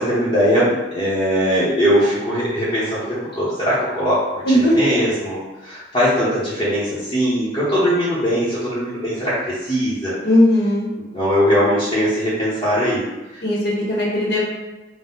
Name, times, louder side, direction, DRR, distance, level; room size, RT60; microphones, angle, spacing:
voice 1, 0.0-4.2 4.7-10.1 11.1-13.0 13.3-13.4, equal, 25° left, -12 dB, 1.0 m, -20 dB
voice 2, 4.4-4.9 10.2-10.9 13.4-14.4, left 1 dB, 70° left, -5 dB, 1.3 m, -17 dB
4.3 x 2.3 x 3.8 m, 1.1 s
head